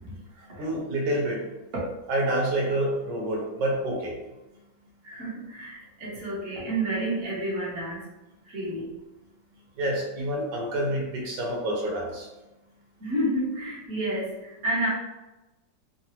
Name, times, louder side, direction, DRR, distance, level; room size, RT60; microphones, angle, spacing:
voice 1, 0.0-0.8 5.0-8.1 8.4-8.9 13.0-14.9, right 1 dB, 45° right, -8 dB, 1.3 m, -30 dB
voice 2, 0.6-1.4 2.1-4.1 9.8-12.3, right 1 dB, 75° right, -1 dB, 1.5 m, -27 dB
3.8 x 2.1 x 2.8 m, 1.0 s
omnidirectional pair, 2.0 m